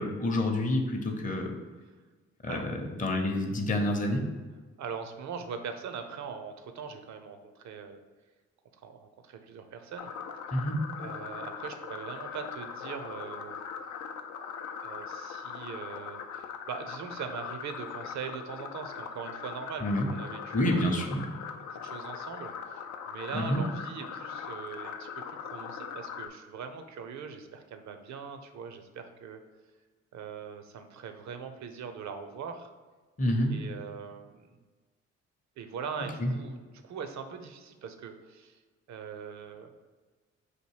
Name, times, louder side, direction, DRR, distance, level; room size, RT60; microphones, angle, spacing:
voice 1, 0.0-1.5 2.4-4.3 10.5-10.8 19.8-20.1 20.5-21.2 23.3-23.6 33.2-33.6 36.2-36.3, left 1 dB, 25° left, 2 dB, 0.7 m, -28 dB
voice 2, 4.8-8.0 8.8-10.1 11.0-13.6 14.8-21.0 21.7-29.4 30.1-32.7 33.5-34.5 35.6-36.6 36.8-38.6 38.9-39.7, right 6 dB, 65° right, 7 dB, 0.6 m, -41 dB
sound 1, 10.0-26.3, left 7 dB, 70° left, 0.5 m, -41 dB
4.3 x 2.6 x 4.6 m, 1.3 s
supercardioid pair, 50°, 31 cm